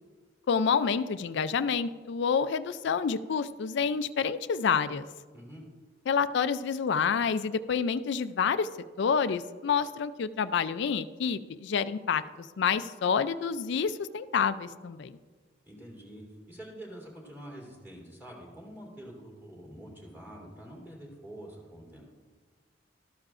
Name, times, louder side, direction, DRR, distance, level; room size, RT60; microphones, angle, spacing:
voice 1, 0.5-5.0 6.1-8.7 9.0-15.1, left 6 dB, 65° left, 12 dB, 0.4 m, -28 dB
voice 2, 5.3-5.6 15.6-22.0, right 1 dB, 10° right, -2 dB, 3.1 m, -46 dB
13.0 x 12.0 x 2.5 m, 1.4 s
head